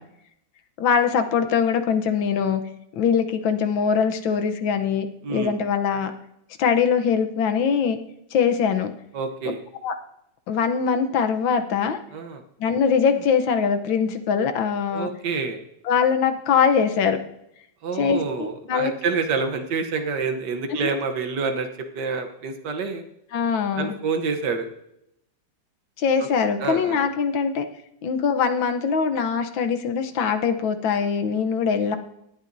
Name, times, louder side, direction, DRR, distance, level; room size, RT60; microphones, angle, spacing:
voice 1, 0.8-2.6 2.9-6.1 6.6-8.0 8.3-8.9 9.8-9.9 10.5-12.0 12.6-15.1 15.8-17.2 18.0-18.9 20.7-20.9 23.3-23.9 26.0-27.7 28.0-32.0, left 6 dB, 80° left, 7 dB, 1.7 m, -22 dB
voice 2, 5.2-5.5 9.1-9.6 12.1-12.4 14.9-15.6 17.8-21.7 21.9-23.0 23.8-24.7 26.6-27.1, right 4 dB, 65° right, 7 dB, 1.6 m, -27 dB
18.5 x 11.5 x 2.7 m, 0.80 s
omnidirectional pair, 2.1 m